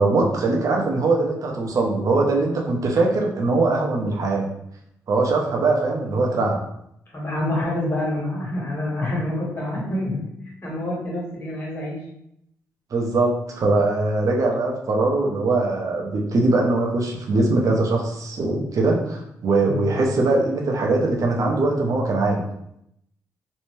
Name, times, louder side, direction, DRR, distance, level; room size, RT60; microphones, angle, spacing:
voice 1, 0.0-4.5 5.1-6.6 12.9-22.4, right 2 dB, 60° right, 0 dB, 0.7 m, -21 dB
voice 2, 7.1-10.2 10.6-12.0 19.6-19.9, left 1 dB, 35° left, -4 dB, 1.4 m, -27 dB
2.7 x 2.1 x 3.2 m, 0.77 s
supercardioid pair, 60°, 7 cm